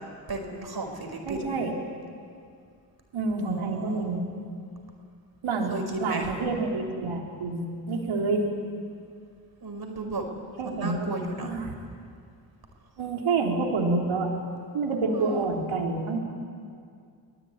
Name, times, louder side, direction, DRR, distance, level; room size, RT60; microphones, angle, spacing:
voice 1, 0.3-1.5 3.4-4.0 5.7-6.3 9.6-10.2 10.6-11.5 15.1-15.4, right 2 dB, 50° right, 4 dB, 5.1 m, -34 dB
voice 2, 1.3-1.7 3.1-4.2 5.4-8.5 10.6-11.1 11.4-11.7 13.0-14.3 14.7-16.2, right 3 dB, 75° right, 1 dB, 3.9 m, -28 dB
25.0 x 19.0 x 9.6 m, 2.3 s
supercardioid pair, 45°, 48 cm